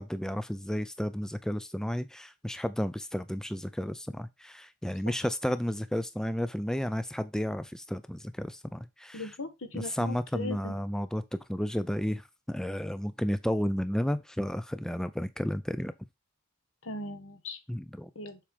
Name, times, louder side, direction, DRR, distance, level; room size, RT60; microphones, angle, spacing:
voice 1, 0.0-9.3 9.7-15.9 17.7-18.1, equal, 5° left, 0.4 m, -32 dB
voice 2, 9.1-10.8 16.8-17.6 18.1-18.4, left 2 dB, 70° left, 1.4 m, -39 dB
7.3 x 4.9 x 3.4 m
head